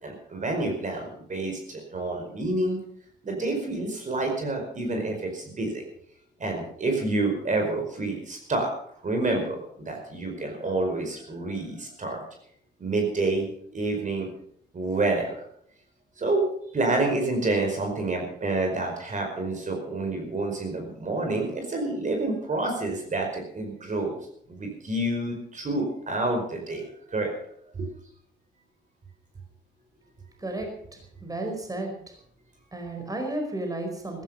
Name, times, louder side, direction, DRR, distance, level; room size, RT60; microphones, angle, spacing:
voice 1, 0.0-2.8 3.2-5.8 6.4-8.7 9.0-12.2 12.8-13.5 13.7-14.3 14.7-15.4 16.2-24.2 24.5-27.4 27.7-27.9, right 2 dB, 40° right, 3 dB, 5.0 m, -28 dB
voice 2, 30.4-30.7 31.2-31.9 32.7-34.2, right 2 dB, 20° right, 3 dB, 4.9 m, -32 dB
15.0 x 15.0 x 5.6 m, 0.67 s
cardioid pair, 90°, 20 cm